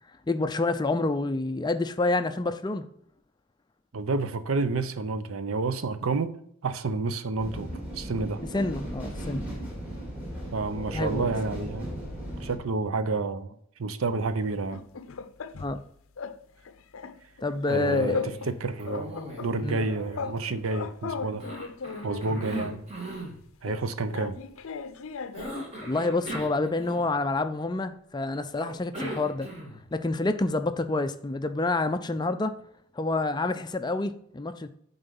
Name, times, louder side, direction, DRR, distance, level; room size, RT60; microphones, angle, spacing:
voice 1, 0.3-2.9 8.5-9.5 10.9-11.4 15.6-15.8 17.4-18.3 19.6-19.8 22.3-22.4 25.8-29.5 29.9-32.6 33.0-34.7, left 2 dB, 20° left, 0.4 m, -28 dB
voice 2, 3.9-8.4 10.5-11.9 12.4-14.8 17.7-21.5 22.0-22.8 23.6-24.4, right 3 dB, 75° right, 0.6 m, -30 dB
sound 1, 7.4-12.6, equal, 10° right, 2.4 m, -37 dB
sound 2, 14.5-15.8 16.2-16.4 16.7-18.6 18.8-20.4 20.7-22.8 23.7-25.6, left 5 dB, 70° left, 0.5 m, -37 dB
Cough, 17.7-18.5 18.8-20.9 21.4-23.4 25.3-27.3 28.6-29.9, right 1 dB, 30° right, 1.7 m, -38 dB
9.2 x 4.0 x 5.3 m
head